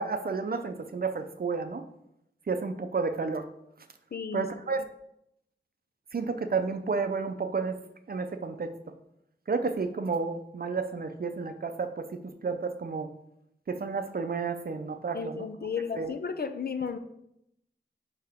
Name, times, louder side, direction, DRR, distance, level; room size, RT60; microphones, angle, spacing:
voice 1, 0.0-1.8 2.5-3.4 4.3-4.8 6.1-7.8 8.1-8.7 9.5-12.1 12.4-13.1 13.7-15.5 16.0-16.1, right 4 dB, 50° right, 8 dB, 0.6 m, -31 dB
voice 2, 4.1-4.5 15.1-17.0, left 6 dB, 50° left, 8 dB, 0.6 m, -33 dB
5.6 x 5.4 x 3.6 m, 0.78 s
wide cardioid pair, 80°, 20 cm